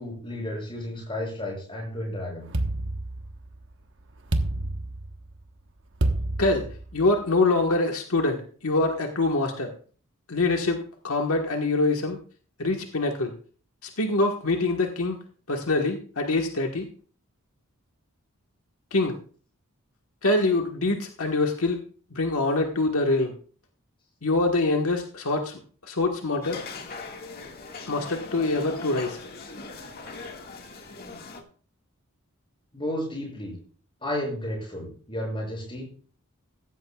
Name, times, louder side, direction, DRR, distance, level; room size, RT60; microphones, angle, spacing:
voice 1, 0.0-2.5 32.7-33.6 34.0-35.9, left 1 dB, 25° left, -1 dB, 7.3 m, -32 dB
sound 1, 2.5-3.7 4.3-5.4 6.0-7.1, right 1 dB, 55° right, 1.2 m, -28 dB
voice 2, 6.9-9.7 10.3-12.2 12.6-13.3 13.8-15.2 15.5-16.9 18.9-19.1 20.2-21.8 22.1-23.3 24.2-26.6 27.9-29.2, left 2 dB, 80° left, 2 dB, 1.4 m, -24 dB
sound 2, 26.4-31.4, left 3 dB, 45° left, 1.8 m, -40 dB
15.5 x 14.5 x 2.4 m, 0.42 s
head